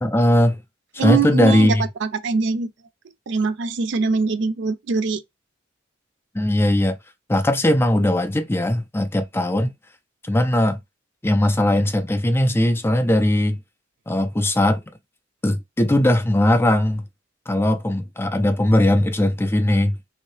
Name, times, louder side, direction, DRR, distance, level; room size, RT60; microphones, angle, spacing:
voice 1, 0.0-0.6 1.0-1.9 6.3-7.0 7.3-9.7 10.2-10.8 11.2-13.6 14.1-14.9 15.4-17.0 17.5-20.0, left 1 dB, 15° left, 0.4 m, -19 dB
voice 2, 1.0-2.7 3.3-5.2, right 4 dB, 65° right, 0.4 m, -23 dB
3.0 x 2.8 x 3.1 m
head